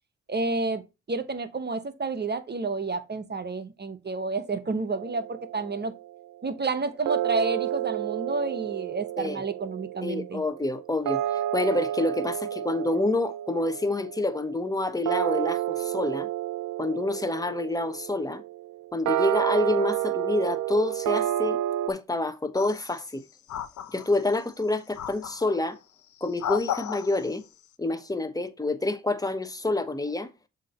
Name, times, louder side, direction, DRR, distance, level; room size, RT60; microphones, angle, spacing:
voice 1, 0.3-0.8 1.1-5.9 6.4-10.4, right 3 dB, 30° right, 0.9 m, -30 dB
sound 1, 4.9-6.3 7.1-21.9, right 13 dB, 65° right, 0.5 m, -30 dB
voice 2, 10.0-16.3 16.8-18.4 18.9-21.6 21.9-23.2 23.9-25.8 26.2-27.4 27.8-30.3, left 2 dB, 10° left, 1.0 m, -28 dB
sound 2, 22.6-23.1 23.5-24.4 25.0-25.6 26.2-27.4, left 10 dB, 60° left, 0.7 m, -34 dB
7.4 x 2.9 x 5.3 m
supercardioid pair, 60°, 33 cm